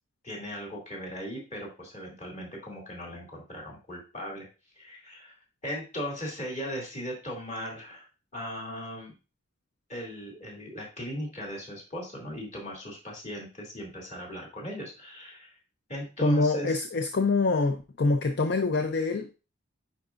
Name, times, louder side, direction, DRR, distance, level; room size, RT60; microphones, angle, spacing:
voice 1, 0.2-4.4 4.8-5.4 5.6-9.1 9.9-15.6 15.9-16.8, equal, 35° left, -2 dB, 2.5 m, -38 dB
voice 2, 16.2-19.3, left 3 dB, 50° left, 7 dB, 0.5 m, -25 dB
9.8 x 4.7 x 2.5 m, 0.31 s
head